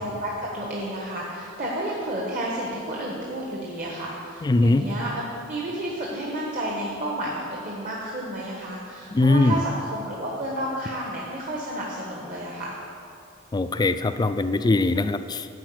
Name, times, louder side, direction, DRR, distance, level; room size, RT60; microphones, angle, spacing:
voice 1, 0.0-12.8, right 1 dB, 40° right, -4 dB, 1.3 m, -31 dB
voice 2, 4.4-4.8 9.1-9.6 13.5-15.5, left 2 dB, 20° left, 11 dB, 0.3 m, -21 dB
11.0 x 4.9 x 7.8 m, 2.6 s
head